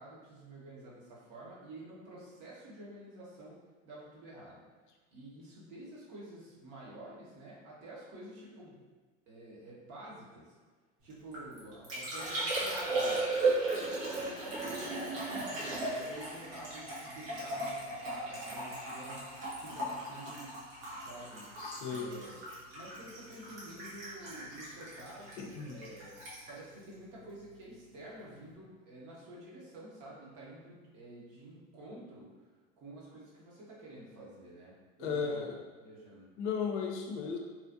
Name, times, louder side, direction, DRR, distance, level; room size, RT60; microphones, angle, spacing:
voice 1, 0.0-3.6 3.8-4.6 5.1-8.8 9.3-10.6 11.0-13.2 13.6-20.6 20.9-21.5 21.9-22.4 22.7-26.2 26.5-32.3 32.8-36.3, right 1 dB, 50° right, -6 dB, 1.2 m, -49 dB
Liquid, 11.1-27.7 28.0-28.5, right 2 dB, 70° right, 1.3 m, -37 dB
voice 2, 21.6-22.1 25.4-25.8 35.0-35.6 36.4-37.4, left 6 dB, 65° left, 2 dB, 0.6 m, -35 dB
3.0 x 2.5 x 2.5 m, 1.4 s
hypercardioid pair, 90°, 39 cm